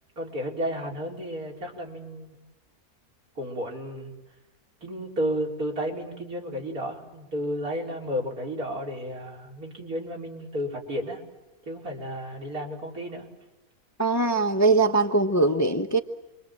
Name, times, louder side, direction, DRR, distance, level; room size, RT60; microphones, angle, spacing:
voice 1, 0.2-2.3 3.4-4.1 4.8-11.2 11.7-13.3, equal, 70° right, -1 dB, 4.8 m, -32 dB
voice 2, 14.0-16.0, right 3 dB, 15° left, 4 dB, 0.8 m, -21 dB
28.5 x 23.0 x 7.6 m, 1.1 s
omnidirectional pair, 1.6 m